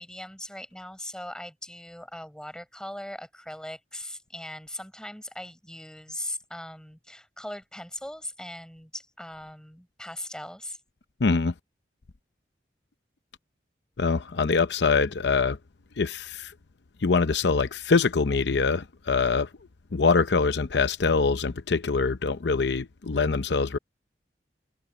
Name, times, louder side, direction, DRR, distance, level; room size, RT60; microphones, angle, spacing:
voice 1, 0.0-10.8, left 1 dB, 5° left, 6.2 m, -39 dB
voice 2, 11.2-11.5 14.0-15.6 16.0-16.5 17.0-19.5 19.9-23.8, left 4 dB, 75° left, 0.7 m, -24 dB
head